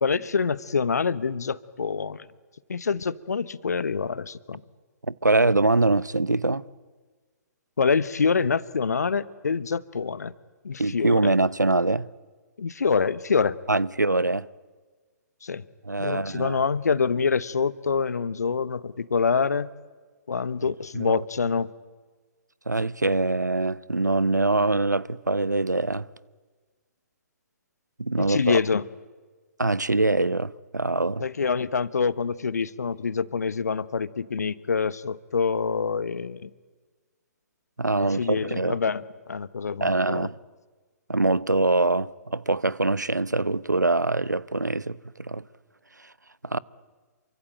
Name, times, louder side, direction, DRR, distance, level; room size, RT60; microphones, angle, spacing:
voice 1, 0.0-2.3 2.7-4.6 7.8-10.3 10.6-11.3 12.6-13.6 15.4-15.6 16.0-19.7 20.3-21.7 28.2-28.8 31.2-36.5 38.1-39.0 39.3-40.3, left 5 dB, 65° left, 1.1 m, -26 dB
voice 2, 5.1-6.6 10.8-12.1 13.7-14.5 15.8-16.6 20.6-21.2 22.7-26.1 28.0-28.6 29.6-31.2 37.8-38.8 39.8-40.4 41.1-45.4 46.4-46.6, right 2 dB, 90° right, 0.8 m, -24 dB
27.5 x 24.0 x 8.9 m
figure-of-eight pair, 125°, 9 cm